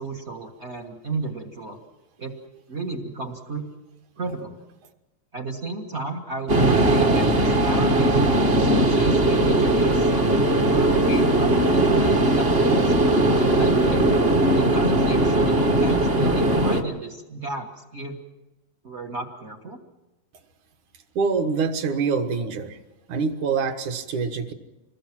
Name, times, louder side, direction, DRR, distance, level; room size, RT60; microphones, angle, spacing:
voice 1, 0.0-1.8 2.2-2.3 2.7-3.7 4.2-4.6 5.3-10.3 10.7-13.1 13.5-14.1 14.5-18.2 18.8-19.8, right 3 dB, 80° right, 2 dB, 0.6 m, -33 dB
sound 1, 6.5-16.8, right 1 dB, 40° right, 0.8 m, -19 dB
voice 2, 21.2-22.8 23.1-24.5, right 5 dB, 65° right, 6 dB, 2.8 m, -25 dB
26.5 x 21.0 x 6.0 m, 1.1 s
omnidirectional pair, 3.9 m